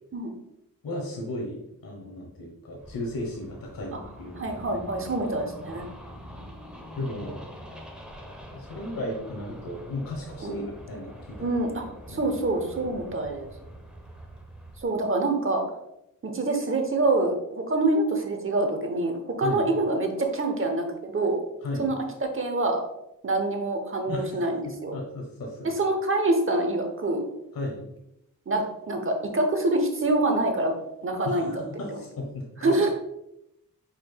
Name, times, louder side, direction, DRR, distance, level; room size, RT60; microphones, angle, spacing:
voice 1, 0.8-1.6 1.8-4.4 6.9-7.4 8.5-11.5 12.1-12.3 12.7-13.0 19.4-19.7 21.6-21.9 24.1-24.5 24.9-25.7 27.5-27.9 31.2-32.5, left 1 dB, 75° left, -1 dB, 1.0 m, -35 dB
sound 1, 2.8-14.8, equal, 5° right, 0.8 m, -44 dB
voice 2, 4.4-5.9 10.4-10.6 11.4-11.8 12.1-13.5 14.8-15.7 16.2-21.4 21.8-21.9 22.3-22.8 23.2-24.9 25.6-27.2 28.5-30.7 31.0-31.6 32.6-32.9, right 2 dB, 35° right, 4 dB, 0.9 m, -26 dB
5.2 x 4.4 x 2.2 m, 0.83 s
wide cardioid pair, 80°, 35 cm